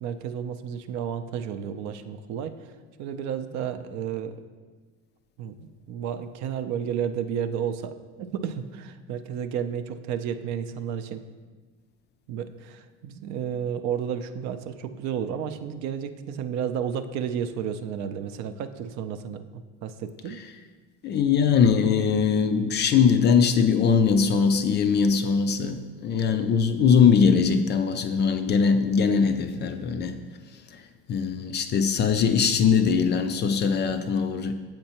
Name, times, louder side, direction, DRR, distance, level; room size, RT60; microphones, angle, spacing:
voice 1, 0.0-2.7 3.0-4.4 5.4-11.2 12.3-20.4, right 8 dB, 50° right, 9 dB, 0.5 m, -32 dB
voice 2, 21.0-30.2 30.7-30.8 31.1-34.5, left 6 dB, 30° left, 8 dB, 0.4 m, -21 dB
7.7 x 4.4 x 2.9 m, 1.4 s
hypercardioid pair, 80°, 36 cm